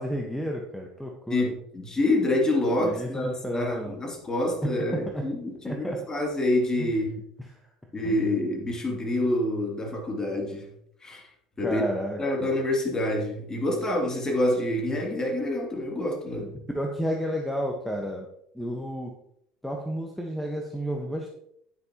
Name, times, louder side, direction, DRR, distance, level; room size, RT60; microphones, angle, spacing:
voice 1, 0.0-1.5 2.8-4.0 4.6-5.3 5.6-6.0 6.8-6.9 7.5-7.6 8.0-8.2 11.6-12.5 16.7-18.3 18.5-19.1 19.6-21.3, equal, 5° left, 1 dB, 1.3 m, -31 dB
voice 2, 1.3-7.1 7.9-10.7 11.0-11.3 11.6-11.8 12.2-16.5, left 1 dB, 20° left, 1 dB, 2.7 m, -27 dB
10.0 x 9.4 x 3.0 m, 0.73 s
hypercardioid pair, 70°, 3 cm